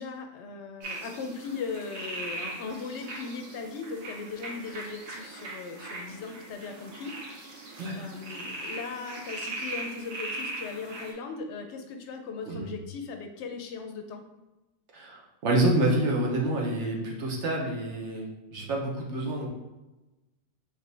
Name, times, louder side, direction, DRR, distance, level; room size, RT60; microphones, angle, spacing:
voice 1, 0.0-7.2 7.9-14.2, left 5 dB, 65° left, 5 dB, 0.8 m, -38 dB
sound 1, 0.8-11.1, right 2 dB, 85° right, 1.4 m, -39 dB
voice 2, 14.9-19.5, right 1 dB, 60° right, -1 dB, 1.1 m, -28 dB
5.1 x 3.1 x 3.3 m, 1.1 s
omnidirectional pair, 1.4 m